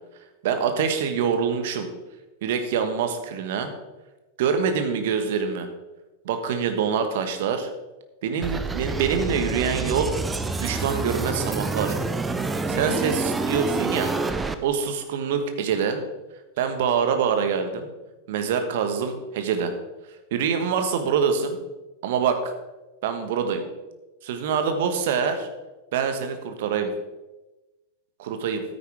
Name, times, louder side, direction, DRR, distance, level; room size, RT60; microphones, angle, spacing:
voice 1, 0.4-1.9 2.4-3.7 4.4-5.7 6.2-7.7 8.2-10.1 10.5-12.0 12.7-14.1 14.6-16.0 16.6-17.9 18.3-19.8 20.3-21.6 22.0-22.5 23.0-23.6 24.2-25.5 25.9-26.9 28.2-28.6, right 6 dB, 55° right, 7 dB, 1.4 m, -25 dB
sound 1, 8.4-14.6, right 3 dB, 10° right, 0.7 m, -27 dB
12.5 x 9.6 x 3.6 m, 1.1 s
figure-of-eight pair, 90°, 0 cm